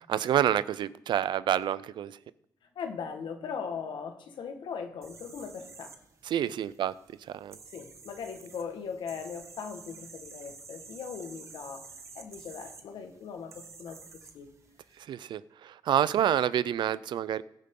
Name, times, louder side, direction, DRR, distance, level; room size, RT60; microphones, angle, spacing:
voice 1, 0.1-2.1 6.3-6.9 7.3-7.6 15.1-17.4, right 10 dB, 70° right, 0.4 m, -28 dB
voice 2, 2.7-5.9 7.6-11.9 12.1-14.0 14.3-14.5, left 6 dB, 75° left, 1.6 m, -39 dB
sound 1, 5.0-15.0, right 4 dB, 35° right, 1.1 m, -51 dB
21.0 x 7.4 x 3.8 m
wide cardioid pair, 175°, 8 cm